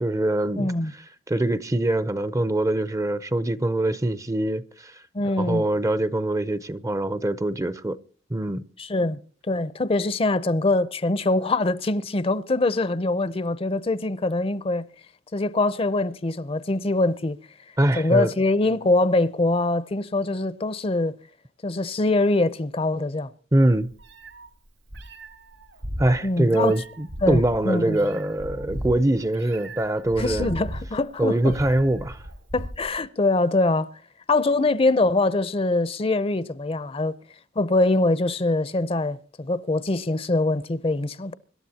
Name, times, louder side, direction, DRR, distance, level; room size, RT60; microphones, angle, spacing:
voice 1, 0.0-0.7 1.3-5.0 5.4-8.0 8.3-8.6 17.8-18.3 23.5-23.9 26.0-30.5 31.2-32.2, right 1 dB, 15° right, 0.5 m, -23 dB
voice 2, 0.6-0.9 5.1-5.6 8.8-9.2 9.5-14.9 15.3-17.4 18.0-21.1 21.6-23.3 26.2-26.7 27.2-28.0 30.2-31.5 32.5-33.9 34.3-37.1 37.6-41.3, left 2 dB, 30° left, 0.6 m, -23 dB
Meow, 23.6-33.0, equal, 85° right, 4.4 m, -37 dB
25.5 x 12.5 x 2.8 m
head